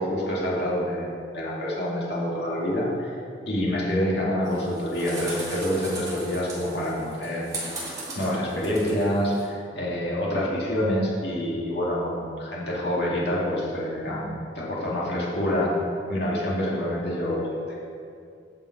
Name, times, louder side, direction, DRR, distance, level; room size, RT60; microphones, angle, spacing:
voice 1, 0.0-3.2 3.5-7.5 7.7-7.9 8.1-15.7 16.1-17.8, equal, 60° left, -5 dB, 2.3 m, -27 dB
sound 1, 4.4-9.4, right 1 dB, 20° right, 2.4 m, -37 dB
14.0 x 5.5 x 4.8 m, 2.4 s
head